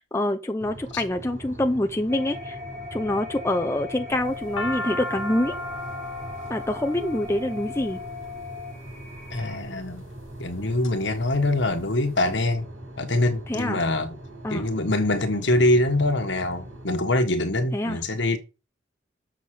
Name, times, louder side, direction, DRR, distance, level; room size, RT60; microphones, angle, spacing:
voice 1, 0.0-2.6 2.9-5.6 6.5-8.0 13.5-13.8 14.4-14.7 17.7-18.0, left 1 dB, 15° left, 0.7 m, -26 dB
sound 1, 0.6-16.9, right 1 dB, 80° right, 6.2 m, -42 dB
sound 2, 2.1-9.6, left 3 dB, 35° right, 3.1 m, -39 dB
sound 3, 4.1-8.4 9.2-9.7 10.3-10.9 11.3-11.4 11.5-12.4, left 1 dB, 80° left, 1.2 m, -35 dB
voice 2, 9.3-10.0 10.4-12.7 13.0-14.1 14.5-18.4, left 1 dB, 60° left, 1.5 m, -24 dB
7.4 x 5.9 x 6.5 m
head